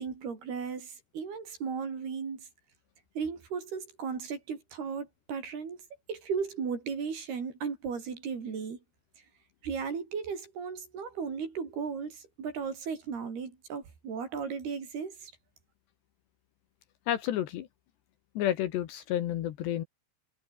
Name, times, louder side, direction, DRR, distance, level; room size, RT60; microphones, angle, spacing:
voice 1, 0.0-2.5 3.2-5.8 6.1-8.8 9.6-15.3, right 6 dB, 55° right, 6.3 m, -36 dB
voice 2, 17.1-17.7 18.3-19.8, left 11 dB, 70° left, 3.3 m, -30 dB
omnidirectional pair, 5.7 m